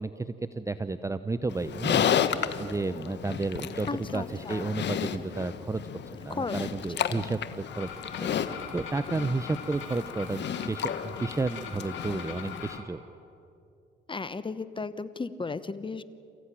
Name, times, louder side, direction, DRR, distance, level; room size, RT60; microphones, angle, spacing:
voice 1, 0.0-3.9 4.1-5.8 6.1-7.9 8.2-13.0, right 3 dB, 15° right, 12 dB, 0.7 m, -32 dB
Livestock farm animals working animals, 1.5-12.8, left 8 dB, 60° left, 1.3 m, -33 dB
voice 2, 3.9-4.7 6.3-6.6 7.0-7.2 14.1-16.0, left 4 dB, 25° left, 14 dB, 1.1 m, -35 dB
sound 1, 7.7-12.8, left 7 dB, 80° left, 3.9 m, -42 dB
29.0 x 15.5 x 9.9 m, 2.7 s
cardioid pair, 90°, 20 cm